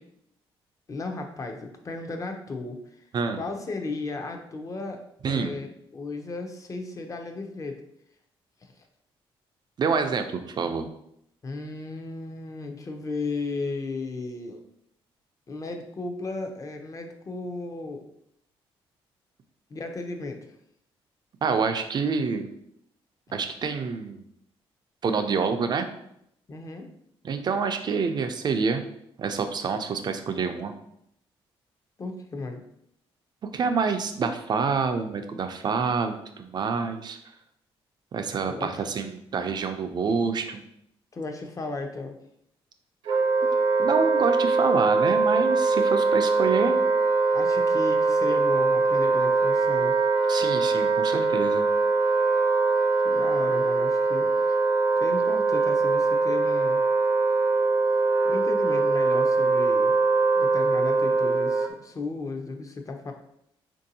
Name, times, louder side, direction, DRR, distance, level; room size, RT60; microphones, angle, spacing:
voice 1, 0.9-2.8 3.3-5.7 5.9-7.8 8.6-8.7 11.4-14.6 15.5-18.0 19.7-20.4 26.5-26.9 32.0-32.6 38.5-38.7 41.1-42.2 47.3-50.0 53.0-54.6 55.0-56.8 58.2-60.0 60.4-63.1, left 3 dB, 35° left, 4 dB, 0.6 m, -34 dB
voice 2, 5.2-5.6 9.8-10.9 21.4-22.5 23.3-24.2 25.0-25.9 27.2-28.8 29.2-30.7 33.5-37.2 38.1-40.6 43.8-46.8 50.3-51.7, right 5 dB, 45° right, 7 dB, 0.4 m, -27 dB
Wind instrument woodwind instrument, 43.0-61.7, right 3 dB, 75° right, 0.8 m, -22 dB
3.8 x 2.6 x 2.7 m, 0.74 s
cardioid pair, 85°, 10 cm